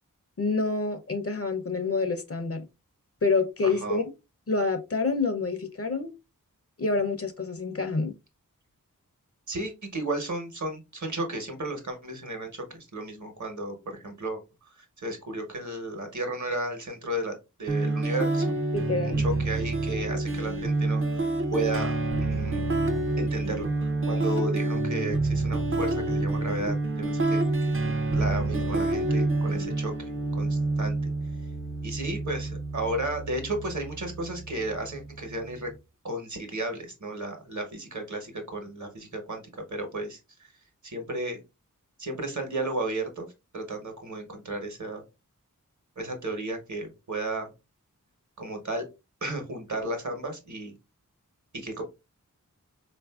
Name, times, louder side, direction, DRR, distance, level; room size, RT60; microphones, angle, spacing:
voice 1, 0.4-2.7 3.2-4.0 4.5-6.1 6.8-8.1 18.7-19.2 27.8-27.9, left 3 dB, 45° left, 0.5 m, -27 dB
voice 2, 3.6-4.0 9.5-14.4 14.7-17.3 17.6-18.5 19.0-21.9 22.2-22.7 23.2-23.7 24.0-27.8 28.1-31.1 31.8-35.7 36.0-39.4 39.7-40.2 40.8-41.4 42.0-43.3 43.5-45.0 46.0-47.5 48.4-48.9 49.2-50.7 51.5-51.8, right 2 dB, 60° right, 1.0 m, -33 dB
sound 1, 17.7-35.6, right 2 dB, 40° right, 0.5 m, -28 dB
3.8 x 2.5 x 2.2 m
wide cardioid pair, 40°, 33 cm